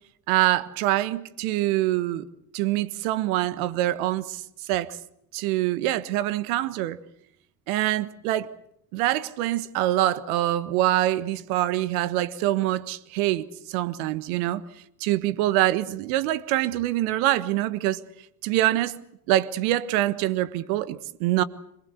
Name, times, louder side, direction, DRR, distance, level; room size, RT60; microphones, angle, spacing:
voice 1, 0.3-2.3 2.5-4.4 4.7-5.0 5.3-7.0 7.7-8.5 8.9-14.6 15.0-18.0 18.4-19.0 19.3-21.4, right 15 dB, 70° right, 1.5 m, -25 dB
26.5 x 20.0 x 8.4 m
hypercardioid pair, 65°, 44 cm